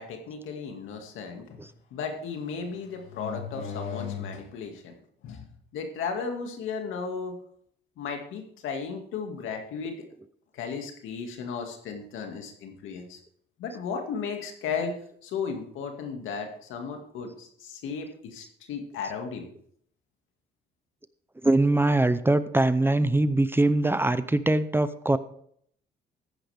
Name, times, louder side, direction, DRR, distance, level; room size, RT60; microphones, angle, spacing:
voice 1, 0.0-1.6 1.9-4.9 5.2-5.4 5.7-7.4 8.0-10.1 10.5-13.2 13.6-15.0 15.2-17.3 17.6-19.4, left 5 dB, 85° left, 4 dB, 2.2 m, -34 dB
voice 2, 21.4-25.2, right 2 dB, 10° right, 13 dB, 0.7 m, -22 dB
14.5 x 10.0 x 3.5 m, 0.64 s
cardioid pair, 90°, 20 cm